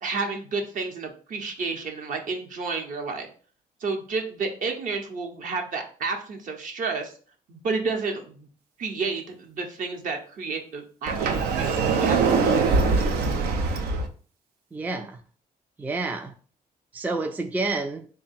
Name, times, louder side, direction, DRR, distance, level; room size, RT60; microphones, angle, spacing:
voice 1, 0.0-3.3 3.8-7.1 7.5-8.5 8.8-12.4, right 4 dB, 60° right, 0.9 m, -31 dB
Sliding door, 11.1-14.1, right 4 dB, 85° right, 0.6 m, -22 dB
voice 2, 14.7-15.2 15.8-16.3 16.9-18.1, right 3 dB, 10° right, 0.3 m, -29 dB
3.6 x 2.2 x 4.1 m
cardioid pair, 90°, 16 cm